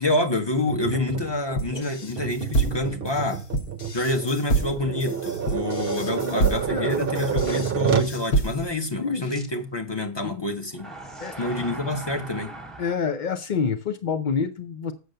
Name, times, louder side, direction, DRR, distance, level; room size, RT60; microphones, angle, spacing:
voice 1, 0.0-3.4 3.9-10.9 11.4-12.5, left 2 dB, 20° left, 1.5 m, -27 dB
Tap, 0.7-8.2, right 7 dB, 50° right, 0.7 m, -29 dB
sound 1, 1.6-8.9, right 2 dB, 80° left, 1.8 m, -27 dB
sound 2, 4.8-4.9 9.3-9.5 10.7-13.0, right 2 dB, ahead, 1.5 m, -39 dB
voice 2, 6.1-7.1 7.5-7.6 9.0-9.4 10.2-10.5 11.2-11.5 12.8-14.9, left 6 dB, 60° left, 0.5 m, -28 dB
7.7 x 6.8 x 6.7 m
omnidirectional pair, 1.6 m